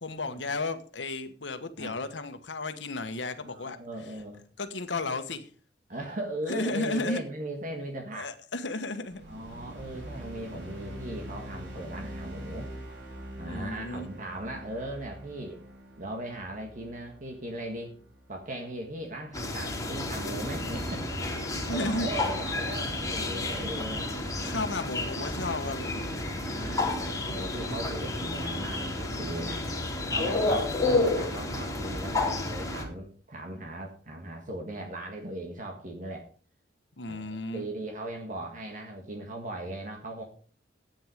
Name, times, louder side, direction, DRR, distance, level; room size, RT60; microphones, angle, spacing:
voice 1, 0.0-3.8 4.6-5.5 6.5-7.2 8.2-9.2 13.5-14.1 21.7-22.1 24.4-26.1 30.5-30.6 37.0-37.7, left 2 dB, 85° left, 9 dB, 1.3 m, -33 dB
voice 2, 3.4-4.4 5.9-8.3 9.3-12.7 13.4-15.6 16.0-17.9 18.3-21.1 21.5-24.2 24.5-24.6 26.3-29.7 30.1-36.3 37.1-40.2, right 1 dB, 45° right, 2 dB, 1.7 m, -38 dB
sound 1, 9.1-19.5, equal, 90° right, 6.6 m, -44 dB
sound 2, 19.3-32.8, left 2 dB, 20° left, 2.8 m, -31 dB
11.0 x 9.0 x 5.0 m, 0.41 s
head